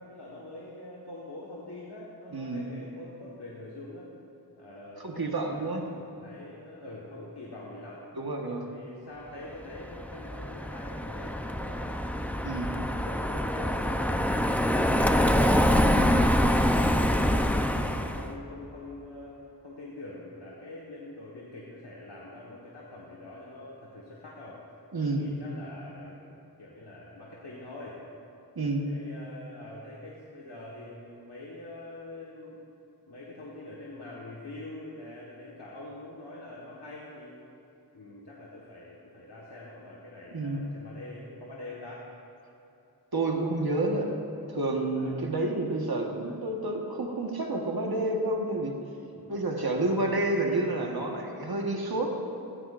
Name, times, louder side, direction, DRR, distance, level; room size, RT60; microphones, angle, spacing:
voice 1, 0.0-4.1 4.6-8.0 8.6-12.0 12.7-15.5 16.2-24.6 25.0-26.2 26.6-28.0 28.8-32.6 33.1-37.5 37.9-42.1 44.0-44.1 44.9-45.2 49.1-49.4, left 2 dB, 80° left, -6 dB, 1.6 m, -44 dB
voice 2, 2.3-2.7 5.0-5.8 8.1-8.7 12.4-12.7 15.9-16.3 24.9-25.3 28.5-28.8 40.3-40.7 43.1-44.1 44.5-48.7 49.3-52.2, right 2 dB, 65° right, 1 dB, 1.5 m, -29 dB
Car passing by, 9.8-18.3, equal, 5° left, 0.6 m, -25 dB
15.5 x 15.5 x 2.6 m, 2.9 s
wide cardioid pair, 50°, 40 cm